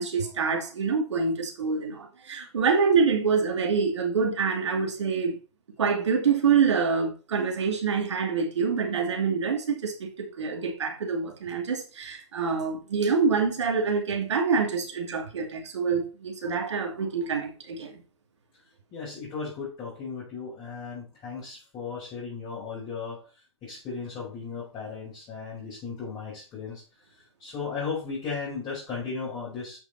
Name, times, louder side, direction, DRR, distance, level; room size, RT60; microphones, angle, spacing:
voice 1, 0.0-5.4 5.8-17.9, right 5 dB, 75° right, 2.6 m, -26 dB
voice 2, 18.9-23.2 23.6-26.8 27.1-29.8, left 5 dB, 30° left, 4.9 m, -36 dB
8.5 x 6.1 x 4.3 m
hypercardioid pair, 115°, 15 cm